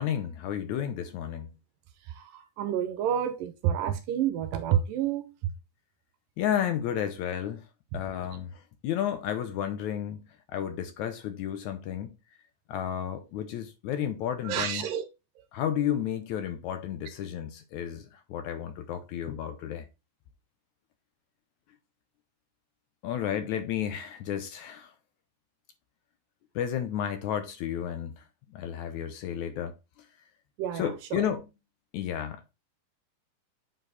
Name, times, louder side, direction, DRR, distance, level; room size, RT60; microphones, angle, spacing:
voice 1, 0.0-1.5 6.4-7.7 7.9-12.1 12.7-14.9 15.5-19.9 23.0-24.9 26.6-28.2 28.5-29.7 30.7-31.4 31.9-32.5, left 9 dB, 75° left, 1.9 m, -32 dB
voice 2, 2.1-5.3 14.4-15.1 30.6-31.3, right 10 dB, 80° right, 2.4 m, -29 dB
8.0 x 4.6 x 4.0 m
omnidirectional pair, 4.0 m